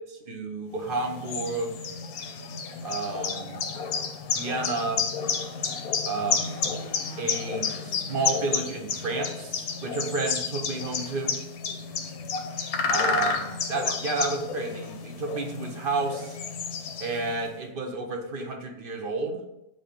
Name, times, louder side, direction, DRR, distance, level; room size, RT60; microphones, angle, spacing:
voice 1, 0.1-1.7 2.8-3.6 4.3-5.1 6.0-6.6 7.2-11.4 12.9-16.4 17.0-19.4, right 3 dB, 45° right, 3 dB, 0.7 m, -31 dB
sound 1, 0.9-17.4, left 6 dB, 65° left, 1.1 m, -31 dB
7.4 x 2.8 x 5.2 m, 0.87 s
omnidirectional pair, 1.8 m